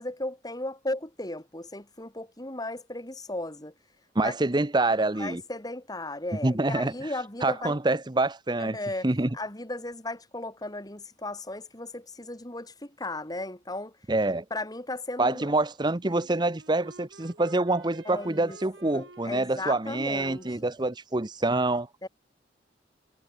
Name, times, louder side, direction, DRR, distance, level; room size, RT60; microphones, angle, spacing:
voice 1, 0.0-3.7 4.2-4.3 5.2-7.8 8.6-9.1 9.3-13.9 14.5-15.5 18.0-18.6 18.9-20.6 22.0-22.1, left 2 dB, 20° left, 3.2 m, -36 dB
voice 2, 4.1-5.4 6.4-6.9 7.4-8.8 9.0-9.3 14.1-14.4 15.2-21.9, right 2 dB, 25° right, 0.9 m, -26 dB
Wind instrument woodwind instrument, 16.0-20.8, right 2 dB, 75° right, 7.0 m, -52 dB
head